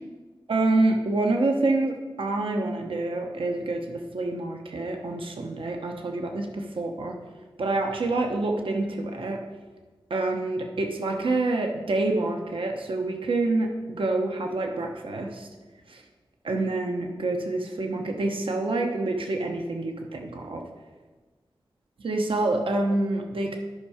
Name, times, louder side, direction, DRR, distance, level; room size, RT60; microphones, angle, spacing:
voice 1, 0.5-7.2 7.6-9.4 10.1-15.5 15.9-16.0 16.4-20.6 22.0-23.6, right 2 dB, 85° right, 3 dB, 1.0 m, -27 dB
11.5 x 5.6 x 4.9 m, 1.3 s
wide cardioid pair, 65°, 9 cm